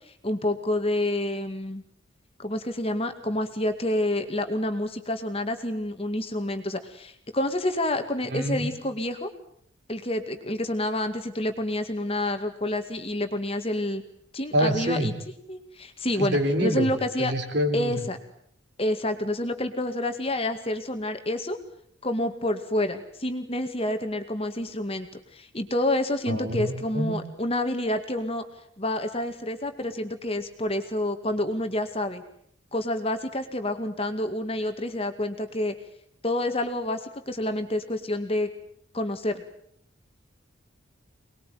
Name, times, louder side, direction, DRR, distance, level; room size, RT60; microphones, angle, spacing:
voice 1, 0.2-1.8 2.4-9.3 9.9-14.0 14.3-15.2 15.5-17.3 17.7-18.2 18.8-21.6 22.0-28.4 28.8-32.2 32.7-35.7 36.2-38.5 38.9-39.4, left 1 dB, 30° left, 7 dB, 2.1 m, -28 dB
voice 2, 8.3-8.7 14.5-15.1 16.2-16.9 17.2-17.9 26.3-27.1, equal, 55° right, 5 dB, 4.0 m, -26 dB
25.0 x 21.0 x 9.4 m, 0.67 s
head